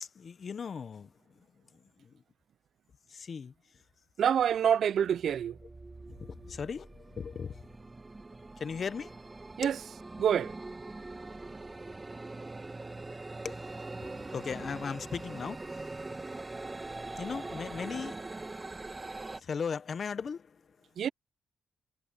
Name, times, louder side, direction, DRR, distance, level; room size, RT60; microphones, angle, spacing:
voice 1, 0.0-1.1 2.0-2.1 3.1-3.5 6.1-6.2 6.5-7.6 8.6-9.2 9.6-9.7 13.4-13.6 14.0-16.0 17.2-18.3 19.4-20.6, left 6 dB, 45° left, 0.7 m, -37 dB
voice 2, 4.2-5.6 9.6-9.8 10.2-10.5 21.0-21.1, right 8 dB, 60° right, 0.3 m, -26 dB
sound 1, 4.4-4.6 4.9-19.4, right 2 dB, 20° right, 1.5 m, -43 dB
cardioid pair, 115°, 0 cm